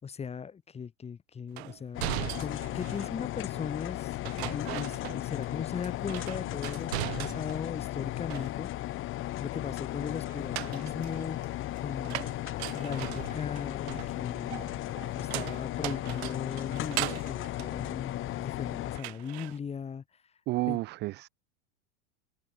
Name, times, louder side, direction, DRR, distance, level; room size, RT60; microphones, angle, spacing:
voice 1, 0.0-2.0 2.4-8.7 9.4-12.3 12.7-14.6 15.1-20.0 20.7-20.8, left 6 dB, 20° left, 5.9 m, -38 dB
sound 1, 1.6-3.2 4.2-5.5 5.8-7.7 8.0-8.9 10.3-18.6 19.0-19.6, right 21 dB, 75° right, 3.8 m, -39 dB
sound 2, 1.9-19.0, left 15 dB, 40° left, 3.9 m, -36 dB
voice 2, 20.5-21.3, right 19 dB, 35° right, 0.5 m, -31 dB
supercardioid pair, 155°, 32 cm